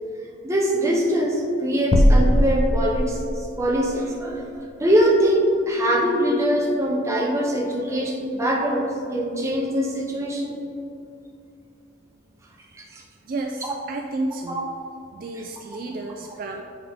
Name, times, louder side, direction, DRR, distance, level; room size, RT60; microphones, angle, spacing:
voice 1, 0.4-3.2 3.6-10.6 12.8-13.0 13.6-13.7 14.5-14.6 15.3-15.4, equal, 15° right, -1 dB, 0.6 m, -23 dB
sound 1, 1.9-3.5, equal, 35° left, 0.4 m, -18 dB
voice 2, 13.2-14.6 15.1-16.6, right 2 dB, 45° right, 1 dB, 0.3 m, -31 dB
8.6 x 3.6 x 3.5 m, 2.6 s
head